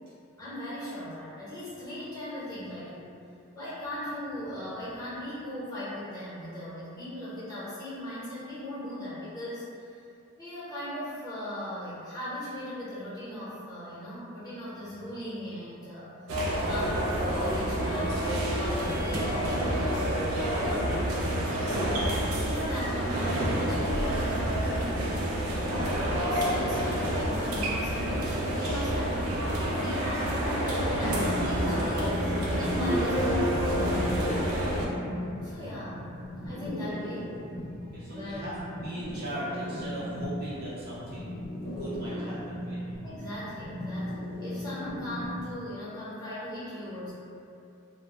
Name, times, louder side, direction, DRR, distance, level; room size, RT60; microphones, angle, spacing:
voice 1, 0.4-3.1 3.5-10.0 10.4-16.1 16.5-22.0 22.4-24.7 25.5-33.6 35.4-37.4 38.1-38.6 42.0-42.4 43.0-47.1, left 1 dB, 20° left, -12 dB, 0.8 m, -38 dB
sound 1, 16.3-34.9, right 1 dB, 80° right, 0.4 m, -28 dB
sound 2, 30.9-45.5, equal, 90° left, 0.4 m, -37 dB
sound 3, 32.8-35.7, left 1 dB, 10° right, 0.3 m, -31 dB
voice 2, 37.8-41.4 41.7-42.8, equal, 45° right, -10 dB, 0.7 m, -39 dB
2.1 x 2.0 x 2.9 m, 2.6 s
head